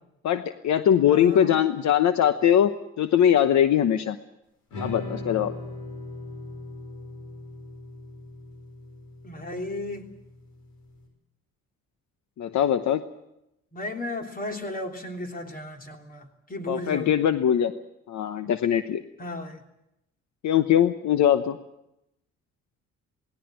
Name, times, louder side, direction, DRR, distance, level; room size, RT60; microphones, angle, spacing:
voice 1, 0.2-4.2 4.8-5.5 12.4-13.0 16.7-17.7 18.1-19.0 20.4-21.6, left 10 dB, 65° left, 10 dB, 1.0 m, -21 dB
voice 2, 1.1-1.7 9.2-10.1 13.7-17.3 19.2-19.6, left 1 dB, 30° left, 4 dB, 3.2 m, -35 dB
sound 1, 4.7-11.0, left 2 dB, 85° left, 5.7 m, -39 dB
18.5 x 17.5 x 8.8 m, 0.84 s
cardioid pair, 90°, 30 cm